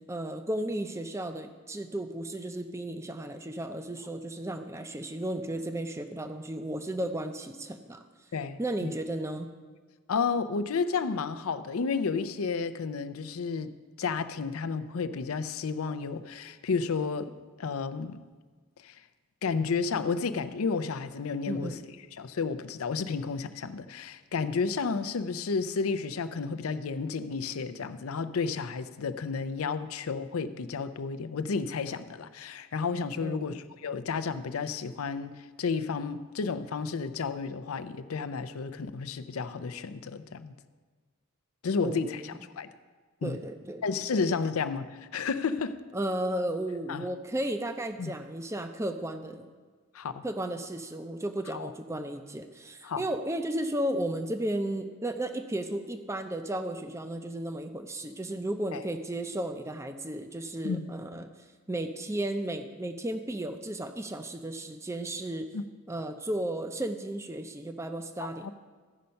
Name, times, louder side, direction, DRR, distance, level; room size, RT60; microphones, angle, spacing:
voice 1, 0.1-8.0 8.6-9.5 21.5-21.8 33.2-33.6 41.8-42.3 43.2-43.8 44.1-44.4 45.9-49.5 50.2-61.3 61.7-65.5 65.9-68.5, right 1 dB, 15° right, 0.5 m, -34 dB
voice 2, 8.3-8.9 10.1-18.2 18.8-19.0 19.4-21.8 22.2-40.6 41.6-42.7 43.2-43.4 43.8-45.8 46.9-47.1 48.0-48.1 49.9-50.2 51.5-51.7 52.8-53.0 58.7-58.8 60.6-60.9 65.5-65.6 68.2-68.5, left 5 dB, 85° left, 0.5 m, -32 dB
14.5 x 5.7 x 5.3 m
head